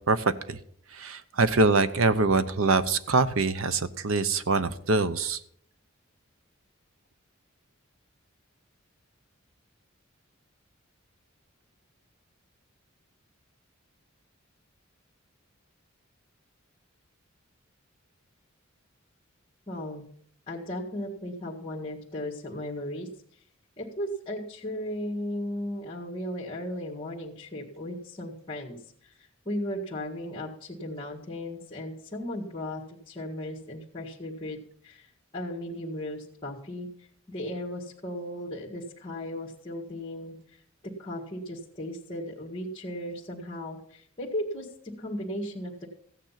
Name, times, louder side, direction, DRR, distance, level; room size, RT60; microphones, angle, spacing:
voice 1, 0.1-0.6 0.9-5.4, right 3 dB, 75° right, 13 dB, 0.8 m, -24 dB
voice 2, 19.7-20.1 20.5-23.1 23.8-34.6 34.8-40.6 41.0-45.9, left 1 dB, 25° left, -3 dB, 1.8 m, -36 dB
15.0 x 9.2 x 5.8 m, 0.65 s
head